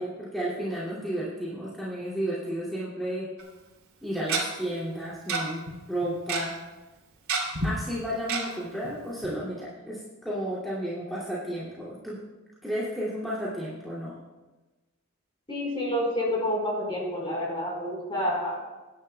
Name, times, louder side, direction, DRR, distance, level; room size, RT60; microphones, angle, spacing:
voice 1, 0.0-3.3 4.0-6.6 7.6-12.2 12.6-14.1, equal, ahead, -9 dB, 2.4 m, -32 dB
Tick-tock, 3.4-3.5 4.3-4.4 5.3-5.4 5.7-5.8 6.0-6.4 7.3-7.7 8.3-8.4 8.8-8.9 9.2-9.3, right 4 dB, 70° right, 2.9 m, -27 dB
voice 2, 15.5-18.5, left 1 dB, 25° left, -3 dB, 4.4 m, -28 dB
20.5 x 10.5 x 2.3 m, 1.2 s
head